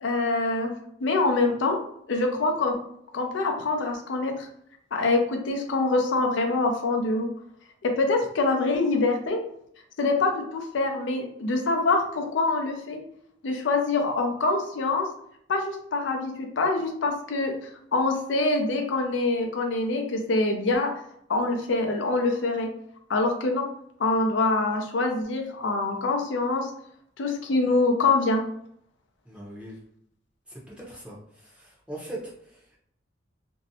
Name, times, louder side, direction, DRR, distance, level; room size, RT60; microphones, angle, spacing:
voice 1, 0.0-0.7 1.0-1.8 2.1-2.8 3.1-4.5 4.9-7.3 7.8-9.4 10.0-13.0 13.4-15.1 15.5-17.6 17.9-20.9 21.3-22.7 23.1-23.7 24.0-26.7 27.2-28.4, left 3 dB, 80° left, 3 dB, 0.4 m, -25 dB
voice 2, 29.3-29.7 30.5-32.8, right 1 dB, 5° right, -5 dB, 0.6 m, -41 dB
2.6 x 2.0 x 2.7 m, 0.70 s
head